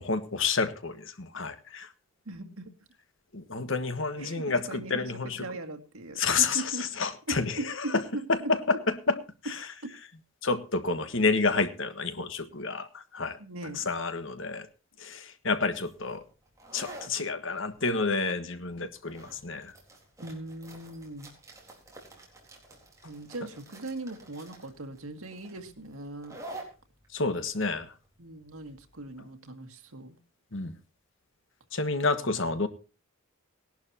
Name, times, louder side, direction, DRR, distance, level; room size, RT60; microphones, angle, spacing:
voice 1, 0.0-1.9 3.3-5.4 6.2-8.0 8.3-8.8 9.1-9.2 10.4-13.4 13.8-14.7 15.0-16.2 16.7-19.7 27.1-27.9 30.5-30.7 31.7-32.7, left 4 dB, 60° left, 1.4 m, -29 dB
voice 2, 2.3-2.8 4.2-5.1 5.4-6.9 7.3-8.5 13.4-13.9 20.2-21.3 23.0-26.4 28.2-30.2 32.2-32.3, right 2 dB, 80° right, 2.1 m, -39 dB
sound 1, 15.7-29.1, right 2 dB, 15° right, 3.8 m, -49 dB
19.0 x 11.5 x 2.9 m
head